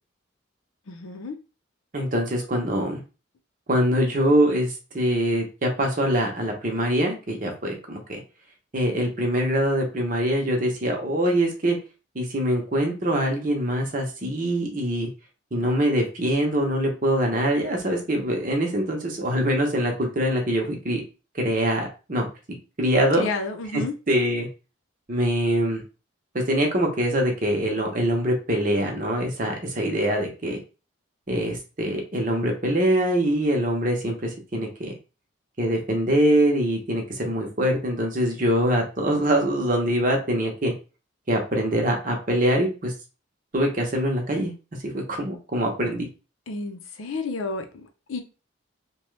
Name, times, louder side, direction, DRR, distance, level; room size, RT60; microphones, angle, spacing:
voice 1, 0.9-1.4 23.2-23.9 46.5-48.2, left 3 dB, 80° left, 0.6 m, -31 dB
voice 2, 1.9-3.0 3.7-8.2 8.7-11.8 12.1-15.1 15.5-21.0 21.3-22.3 22.8-23.2 23.7-24.5 25.1-25.8 26.3-30.6 31.3-34.9 35.6-40.7 41.3-42.9 43.5-44.5 44.8-46.1, equal, 40° right, 0.8 m, -24 dB
2.9 x 2.2 x 3.1 m
head